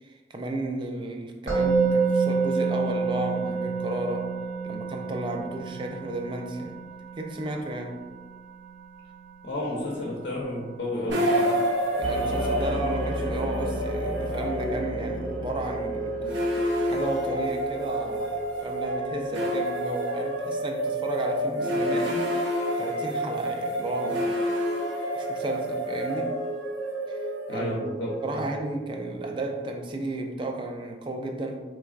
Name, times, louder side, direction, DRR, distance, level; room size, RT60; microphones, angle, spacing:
voice 1, 0.0-4.3 4.6-6.8 7.2-8.0 11.2-11.5 12.0-16.4 16.9-24.3 25.2-26.4 27.1-27.8 28.2-31.6, right 2 dB, 25° right, 3 dB, 0.3 m, -33 dB
Musical instrument, 1.5-12.6, right 5 dB, 70° right, 1.1 m, -30 dB
voice 2, 9.4-11.6 27.5-28.5, left 1 dB, 70° left, -3 dB, 0.6 m, -32 dB
sound 1, 11.1-30.2, equal, 90° right, 0.6 m, -29 dB
sound 2, 12.0-18.8, left 1 dB, 10° left, 0.7 m, -34 dB
3.8 x 3.3 x 2.4 m, 1.3 s
head